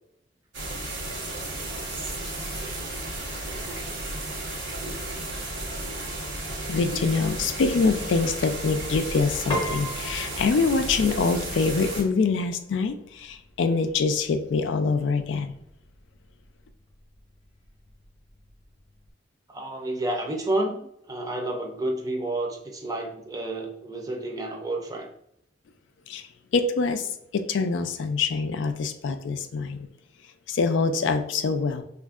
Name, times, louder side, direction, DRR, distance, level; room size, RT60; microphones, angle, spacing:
sound 1, 0.5-12.0, right 1 dB, 70° right, 1.2 m, -33 dB
voice 1, 6.7-15.5 26.1-29.9 30.5-31.8, left 4 dB, 85° left, 8 dB, 0.4 m, -25 dB
Piano, 9.5-19.1, equal, 25° left, 0.7 m, -40 dB
voice 2, 19.5-25.1, right 1 dB, 20° right, 1 dB, 0.5 m, -30 dB
5.2 x 2.5 x 2.4 m, 0.75 s
head